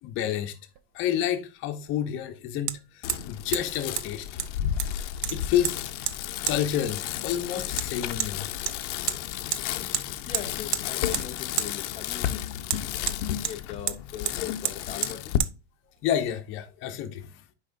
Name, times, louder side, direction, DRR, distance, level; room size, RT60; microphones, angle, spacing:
voice 1, 0.0-0.6 0.9-4.3 5.3-5.8 6.5-8.5 12.9-13.0 16.0-17.4, left 10 dB, 35° left, 0.8 m, -29 dB
Hammer, 0.8-0.9 2.7-2.8 3.1-3.3 3.5-3.6 4.0-4.1 4.4-4.9 5.2-5.8 6.1-6.2 6.5-6.6 7.8-7.9 8.2-8.3 8.7-9.2 9.5-9.6 9.9-10.1 10.3-10.9 11.1-11.3 11.6-11.7 12.7-13.6 13.9-14.0 14.3-14.4 14.7-14.8 15.0-15.2 15.4-15.5, right 13 dB, 40° right, 0.4 m, -29 dB
Bicycle, 3.0-15.4, left 12 dB, 85° left, 0.7 m, -32 dB
voice 2, 10.3-12.4 13.4-15.4, left 9 dB, 20° left, 0.5 m, -40 dB
10.0 x 4.9 x 2.5 m
supercardioid pair, 165°, 35 cm